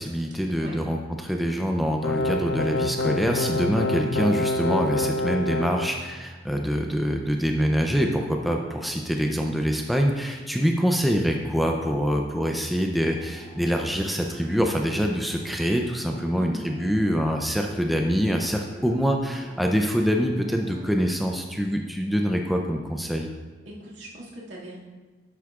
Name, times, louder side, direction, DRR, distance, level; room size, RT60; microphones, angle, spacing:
voice 1, 0.0-23.3, equal, ahead, 2 dB, 0.5 m, -25 dB
voice 2, 0.5-0.9 16.3-17.1 23.7-24.8, equal, 80° right, -5 dB, 2.2 m, -40 dB
sound 1, 2.0-5.9, left 1 dB, 65° left, 0.5 m, -26 dB
sound 2, 13.1-21.1, equal, 30° right, 2.7 m, -47 dB
10.5 x 8.1 x 2.4 m, 1.3 s
head